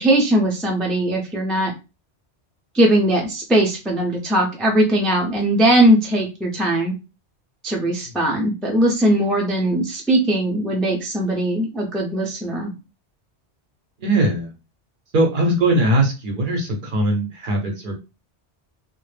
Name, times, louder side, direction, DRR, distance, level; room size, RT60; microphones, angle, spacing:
voice 1, 0.0-1.7 2.7-6.9 7.6-12.7, right 1 dB, ahead, -1 dB, 0.3 m, -19 dB
voice 2, 14.0-14.5 15.1-17.9, right 1 dB, 55° right, 1 dB, 0.7 m, -20 dB
2.1 x 2.0 x 3.2 m, 0.28 s
omnidirectional pair, 1.1 m